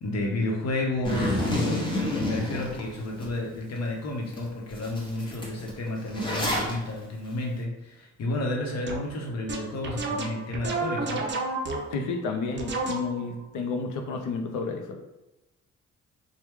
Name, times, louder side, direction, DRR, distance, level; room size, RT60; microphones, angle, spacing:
voice 1, 0.0-11.3, left 1 dB, 60° left, 0 dB, 0.9 m, -31 dB
Zipper (clothing), 1.0-3.3 3.8-3.9 4.3-4.4 4.7-6.7, left 1 dB, 15° left, 0.9 m, -29 dB
sound 1, 8.9-9.1 9.5-12.1 12.6-13.3, right 3 dB, 40° right, 0.5 m, -31 dB
voice 2, 11.9-15.0, left 4 dB, 80° left, 4 dB, 0.6 m, -31 dB
3.0 x 2.2 x 3.4 m, 0.99 s
cardioid pair, 90°, 30 cm